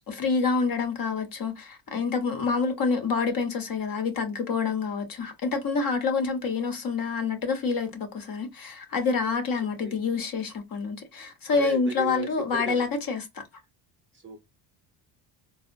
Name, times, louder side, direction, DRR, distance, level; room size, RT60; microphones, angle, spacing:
voice 1, 0.1-13.4, left 4 dB, 45° left, 0.9 m, -27 dB
voice 2, 11.5-12.9 14.1-14.4, right 4 dB, 25° right, 0.6 m, -37 dB
3.6 x 2.0 x 2.4 m
cardioid pair, 100°, 49 cm